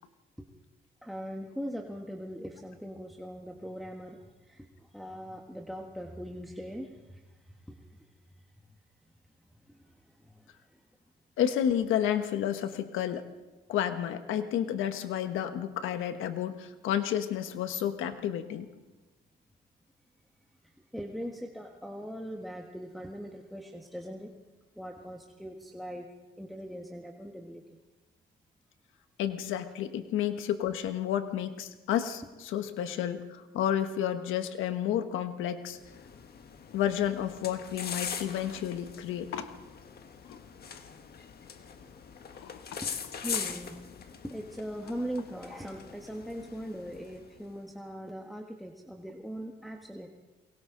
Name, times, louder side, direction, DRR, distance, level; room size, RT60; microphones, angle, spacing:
voice 1, 1.0-7.2 7.5-8.1 9.7-9.8 10.2-10.8 20.8-24.3 24.7-26.1 26.4-27.8 42.8-42.9 43.2-50.1, equal, ahead, 0 dB, 1.6 m, -41 dB
voice 2, 11.4-13.3 13.7-18.7 29.2-35.8 36.7-39.5 40.2-40.4 42.3-42.8, left 10 dB, 90° left, 8 dB, 1.4 m, -31 dB
sound 1, 35.7-47.5, left 7 dB, 50° left, 1.6 m, -42 dB
28.5 x 23.0 x 4.0 m, 1.2 s
cardioid pair, 90°, 20 cm